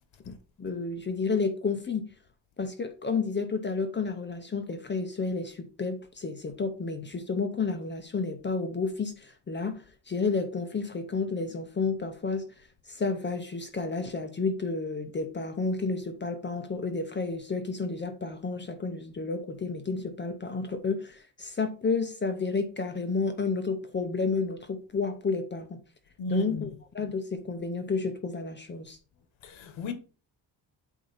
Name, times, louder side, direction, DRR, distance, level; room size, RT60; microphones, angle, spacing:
voice 1, 0.3-2.1 2.6-12.5 12.9-25.7 26.3-26.7 26.9-29.0, left 4 dB, 25° left, 0.7 m, -31 dB
voice 2, 26.2-26.7 29.4-29.9, left 2 dB, 80° left, 1.4 m, -34 dB
8.2 x 2.8 x 5.5 m
cardioid pair, 150°, 45 cm